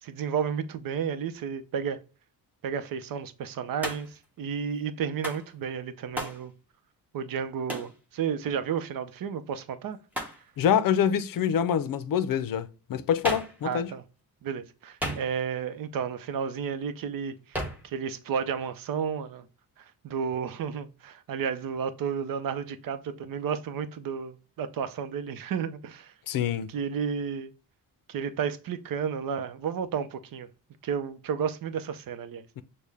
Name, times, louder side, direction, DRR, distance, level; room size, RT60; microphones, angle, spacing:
voice 1, 0.0-2.0 2.6-6.5 7.1-10.0 13.6-14.0 14.4-19.5 19.8-26.1 26.7-27.5 28.1-30.5 30.8-32.4, right 7 dB, 60° right, 0.7 m, -32 dB
Hands, 3.8-4.2 5.2-5.5 6.2-6.4 7.7-8.0 10.1-10.4 13.2-13.6 15.0-15.6 17.5-17.9, equal, 5° right, 1.0 m, -34 dB
voice 2, 10.6-13.9 26.3-26.7 32.6-32.7, left 8 dB, 60° left, 0.6 m, -26 dB
6.4 x 2.2 x 3.4 m
cardioid pair, 125°, 39 cm